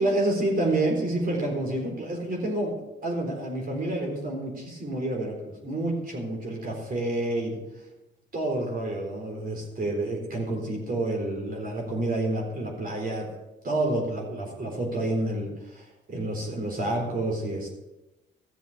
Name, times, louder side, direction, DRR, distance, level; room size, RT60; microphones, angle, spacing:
voice 1, 0.0-7.6 8.3-13.3 13.6-17.7, right 1 dB, 45° right, 0 dB, 4.1 m, -29 dB
14.0 x 7.1 x 6.8 m, 0.99 s
cardioid pair, 90°, 20 cm